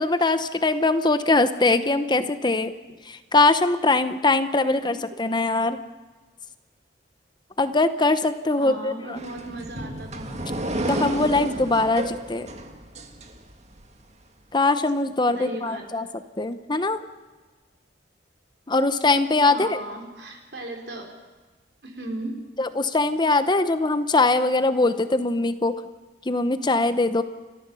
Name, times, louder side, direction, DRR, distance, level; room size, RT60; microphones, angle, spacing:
voice 1, 0.0-2.7 3.1-5.8 7.6-9.2 10.9-12.5 14.5-16.1 16.4-17.0 18.7-19.8 22.6-25.7 26.3-27.2, left 2 dB, 25° left, 11 dB, 0.8 m, -22 dB
voice 2, 8.6-10.3 15.3-15.8 19.5-21.1 21.8-22.3, right 1 dB, 65° right, 2 dB, 4.2 m, -36 dB
sound 1, 9.1-13.8, right 1 dB, 35° right, 1.9 m, -31 dB
29.5 x 14.0 x 7.0 m, 1.3 s
head